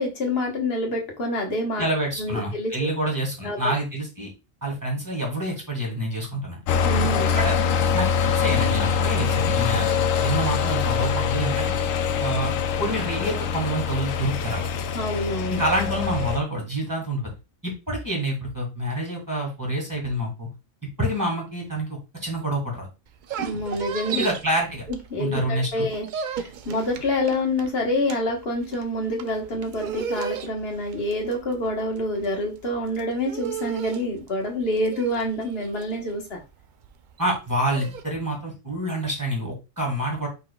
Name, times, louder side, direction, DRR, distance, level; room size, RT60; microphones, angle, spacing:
voice 1, 0.0-1.8 2.2-2.9 3.4-3.7 6.8-7.3 14.9-15.6 23.4-24.3 24.9-26.1 26.3-36.4, left 1 dB, 50° left, 1 dB, 1.4 m, -27 dB
voice 2, 1.8-4.3 4.6-6.6 7.3-7.6 7.9-8.1 8.4-9.9 10.2-11.7 12.2-12.5 12.8-14.7 15.5-17.3 17.6-20.5 21.0-22.9 24.1-24.8 25.2-25.9 37.2-40.3, right 1 dB, 15° right, -1 dB, 1.8 m, -27 dB
sound 1, 6.7-16.4, left 6 dB, 80° left, 1.0 m, -24 dB
sound 2, 23.1-25.4 25.7-38.0, right 7 dB, 70° right, 0.4 m, -35 dB
5.0 x 4.1 x 2.2 m, 0.28 s
omnidirectional pair, 1.3 m